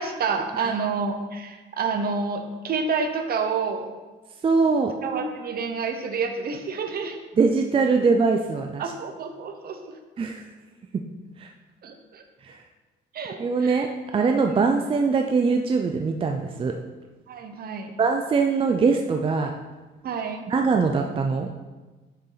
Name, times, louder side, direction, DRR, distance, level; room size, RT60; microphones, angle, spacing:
voice 1, 0.0-3.9 5.0-7.2 8.8-9.9 11.8-12.2 13.1-13.8 14.5-14.7 17.3-17.9 20.0-20.4, right 5 dB, 50° right, 6 dB, 1.0 m, -29 dB
voice 2, 4.4-4.9 7.4-8.9 10.2-10.4 11.4-11.5 12.4-12.6 13.4-16.7 18.0-19.5 20.5-21.5, right 4 dB, 25° right, 3 dB, 0.5 m, -22 dB
6.9 x 6.7 x 4.0 m, 1.2 s
cardioid pair, 115°, 20 cm